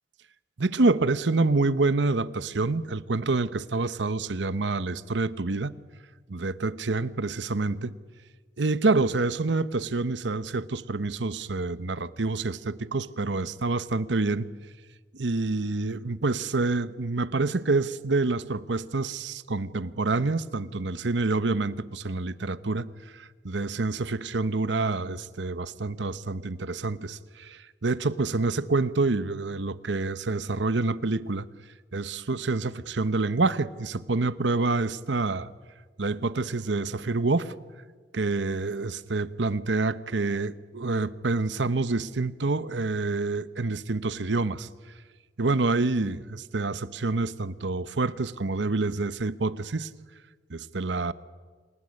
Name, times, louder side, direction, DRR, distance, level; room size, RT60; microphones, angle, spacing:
voice 1, 0.6-5.7 6.3-7.9 8.6-14.5 15.2-22.9 23.1-31.5 31.9-35.5 36.0-37.5 38.1-44.7 45.4-49.9 50.5-51.1, right 3 dB, 80° right, 0.9 m, -27 dB
27.0 x 18.5 x 9.6 m
head